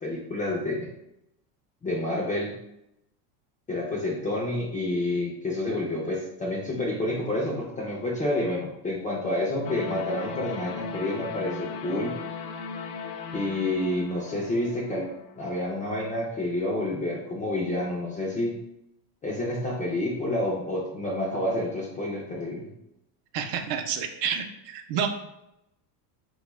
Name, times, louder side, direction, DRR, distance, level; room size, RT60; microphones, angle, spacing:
voice 1, 0.0-0.9 1.8-2.5 3.7-12.1 13.3-15.1 15.4-18.6 19.2-22.7, left 1 dB, 20° left, -4 dB, 0.3 m, -29 dB
sound 1, 9.6-15.7, left 6 dB, 85° left, 0.6 m, -37 dB
voice 2, 23.3-25.1, right 7 dB, 55° right, 6 dB, 0.6 m, -29 dB
3.4 x 2.3 x 3.0 m, 0.84 s
supercardioid pair, 115°, 50 cm